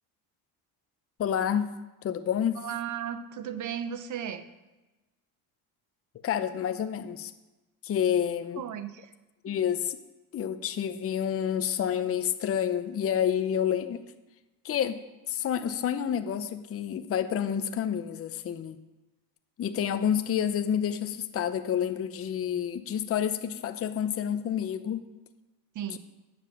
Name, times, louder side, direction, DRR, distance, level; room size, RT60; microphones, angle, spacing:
voice 1, 1.2-1.7 2.0-2.6 6.2-7.3 7.8-8.6 9.4-10.0 10.3-14.0 14.6-15.0 15.3-18.8 19.6-25.0 25.9-26.0, left 9 dB, 35° left, 9 dB, 0.7 m, -29 dB
voice 2, 2.6-4.5 8.6-9.1 9.5-9.6 25.7-26.0, right 9 dB, 45° right, 11 dB, 0.9 m, -35 dB
8.9 x 7.0 x 6.0 m, 1.1 s
cardioid pair, 105°, 41 cm